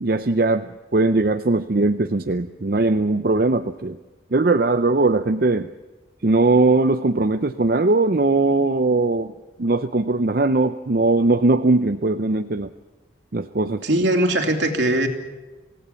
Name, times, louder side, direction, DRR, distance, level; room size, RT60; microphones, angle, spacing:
voice 1, 0.0-4.0 4.3-5.7 6.2-9.3 9.6-12.7 13.3-13.8, right 2 dB, 50° right, 8 dB, 0.6 m, -20 dB
voice 2, 13.8-15.1, right 1 dB, 75° right, 3 dB, 3.0 m, -20 dB
26.5 x 17.0 x 7.0 m, 1.2 s
head